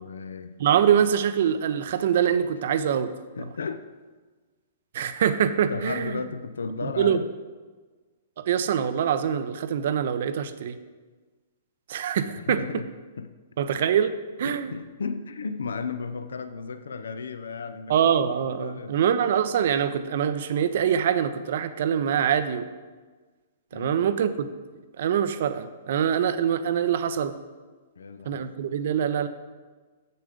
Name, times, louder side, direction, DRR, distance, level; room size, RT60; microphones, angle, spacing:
voice 1, 0.0-0.8 3.4-3.9 5.7-7.3 12.3-12.9 13.2-13.3 14.4-18.0 18.4-19.0 23.7-24.1 28.0-28.5, left 5 dB, 65° left, 11 dB, 0.5 m, -34 dB
voice 2, 0.6-3.1 4.9-6.2 7.0-7.2 8.4-10.8 11.9-12.6 13.6-14.1 14.4-14.7 17.9-22.7 23.7-24.5 25.0-27.3 28.3-29.3, right 8 dB, 55° right, 12 dB, 0.5 m, -24 dB
7.8 x 6.7 x 5.0 m, 1.4 s
figure-of-eight pair, 110°, 0 cm